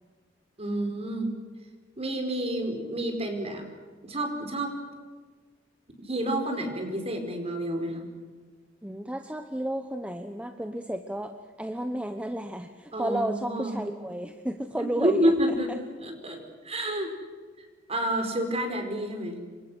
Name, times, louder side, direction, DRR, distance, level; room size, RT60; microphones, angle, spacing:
voice 1, 0.6-1.3 2.0-3.7 4.0-4.8 6.0-8.1 12.9-13.8 14.8-15.7 16.0-17.1 17.6-19.4, right 1 dB, 35° right, 5 dB, 4.8 m, -29 dB
voice 2, 8.8-15.3, right 1 dB, 5° right, 7 dB, 1.0 m, -32 dB
28.0 x 24.5 x 6.4 m, 1.5 s
head